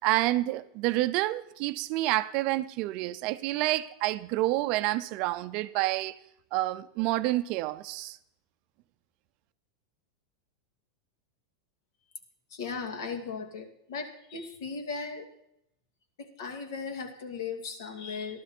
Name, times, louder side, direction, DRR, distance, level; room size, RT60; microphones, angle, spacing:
voice 1, 0.0-6.1 6.5-8.2, right 17 dB, 35° right, 0.5 m, -28 dB
voice 2, 12.5-15.3 16.2-18.4, left 5 dB, 70° left, 2.4 m, -37 dB
14.5 x 12.5 x 4.4 m
supercardioid pair, 175°, 2 cm